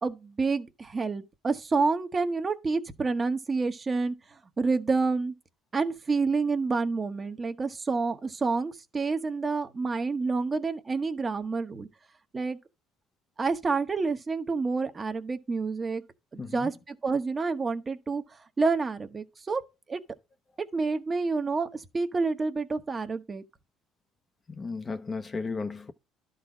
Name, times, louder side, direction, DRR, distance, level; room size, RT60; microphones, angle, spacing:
voice 1, 0.0-4.2 4.6-5.3 5.7-11.9 12.3-12.6 13.4-16.0 16.3-18.2 18.6-19.6 19.9-20.0 20.7-23.4, right 4 dB, 25° right, 1.0 m, -28 dB
voice 2, 16.4-16.7 24.5-25.9, left 4 dB, 25° left, 0.7 m, -34 dB
12.0 x 4.1 x 4.9 m
cardioid pair, 125°, 0 cm